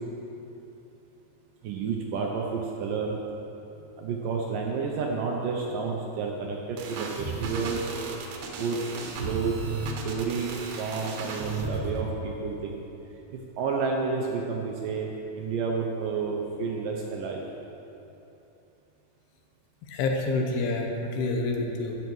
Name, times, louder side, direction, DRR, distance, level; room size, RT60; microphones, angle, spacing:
voice 1, 1.6-3.2 4.0-7.8 8.6-8.8 9.2-9.5 10.0-12.8 13.3-17.4, right 5 dB, 75° right, 0 dB, 2.2 m, -30 dB
sound 1, 6.8-12.1, right 4 dB, 90° right, 3.2 m, -34 dB
voice 2, 19.9-22.0, left 2 dB, 90° left, 1 dB, 3.1 m, -28 dB
15.5 x 7.2 x 4.7 m, 2.9 s
omnidirectional pair, 4.5 m